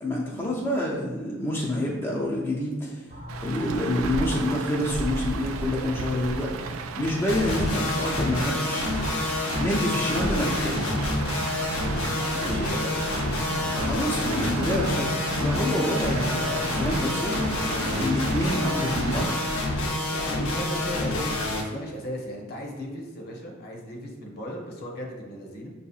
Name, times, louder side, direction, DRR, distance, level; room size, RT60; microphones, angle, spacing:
voice 1, 0.0-3.0 3.4-9.0 9.6-11.2 12.5-12.8 13.7-19.4, left 1 dB, 10° left, -4 dB, 0.4 m, -28 dB
sound 1, 3.1-9.4, left 1 dB, 35° right, 0.7 m, -43 dB
Rain, 3.3-20.3, right 4 dB, 70° right, 0.3 m, -35 dB
sound 2, 7.3-21.6, left 2 dB, 80° left, 0.7 m, -28 dB
voice 2, 12.1-13.0 20.1-25.7, equal, 50° left, 0 dB, 0.8 m, -37 dB
5.8 x 2.7 x 2.4 m, 1.3 s
head